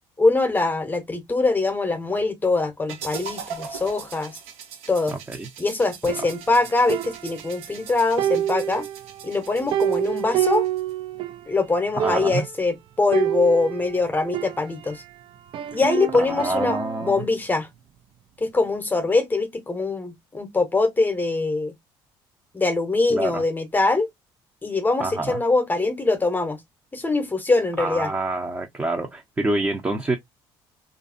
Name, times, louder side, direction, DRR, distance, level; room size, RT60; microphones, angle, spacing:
voice 1, 0.2-4.4 4.9-5.1 5.6-8.9 9.2-10.7 11.5-15.0 15.7-17.7 18.4-21.7 22.5-24.1 24.6-26.6 26.9-28.1, left 3 dB, 20° left, 0.8 m, -23 dB
sound 1, 2.9-10.9, right 6 dB, 80° right, 0.7 m, -40 dB
voice 2, 5.1-5.5 12.0-12.4 16.3-17.2 23.1-23.4 25.0-25.4 27.8-30.2, right 2 dB, 20° right, 0.6 m, -27 dB
sound 2, 6.1-7.8 8.2-11.5 11.7-11.8 12.0-12.6 13.1-15.1 15.5-17.2, right 11 dB, 55° right, 0.3 m, -28 dB
2.6 x 2.5 x 2.4 m
supercardioid pair, 80°, 11 cm